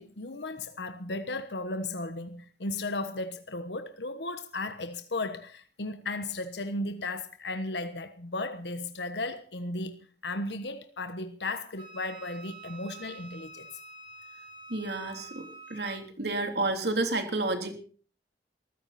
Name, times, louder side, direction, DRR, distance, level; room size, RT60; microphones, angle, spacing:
voice 1, 0.0-13.7, left 2 dB, 75° left, 1.3 m, -35 dB
Wind instrument woodwind instrument, 11.8-16.0, right 3 dB, 30° right, 5.3 m, -47 dB
voice 2, 14.7-17.8, right 2 dB, 70° right, 3.4 m, -31 dB
22.0 x 14.5 x 4.3 m
head